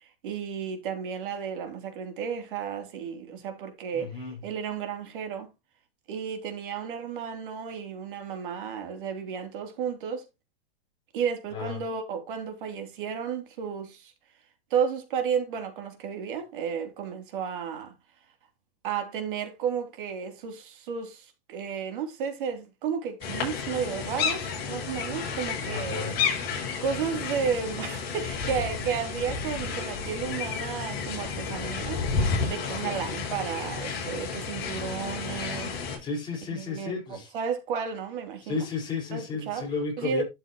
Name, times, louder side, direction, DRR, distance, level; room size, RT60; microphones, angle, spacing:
voice 1, 0.0-5.5 6.1-10.2 11.1-14.1 14.7-17.9 18.8-26.1 26.8-32.1 32.5-36.1 36.5-38.7 39.1-39.6 40.0-40.2, right 7 dB, 60° right, 3.0 m, -33 dB
voice 2, 3.9-4.4 11.5-11.8 25.7-26.2 36.0-37.3 38.4-40.2, left 5 dB, 15° left, 4.5 m, -33 dB
sound 1, 23.2-36.0, left 5 dB, 30° left, 6.6 m, -31 dB
12.5 x 7.1 x 2.9 m
supercardioid pair, 160°, 30 cm